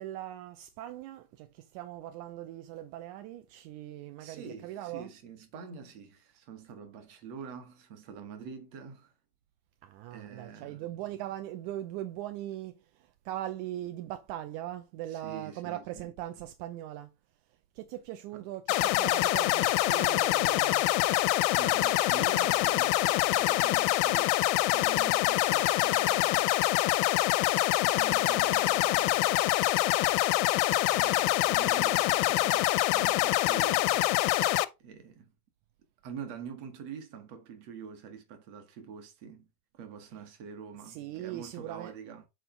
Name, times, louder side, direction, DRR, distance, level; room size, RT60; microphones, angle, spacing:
voice 1, 0.0-5.1 9.8-17.1 17.8-20.9 33.7-34.1 40.1-40.2 40.8-41.9, right 13 dB, 80° right, 1.8 m, -40 dB
voice 2, 4.2-9.1 10.1-10.9 15.1-16.1 18.3-18.5 21.6-26.6 27.8-29.4 30.9-33.9 34.8-35.3 36.0-42.3, right 7 dB, 55° right, 2.2 m, -45 dB
sound 1, 18.7-34.7, left 17 dB, 85° left, 2.3 m, -25 dB
8.9 x 4.2 x 3.8 m
omnidirectional pair, 4.0 m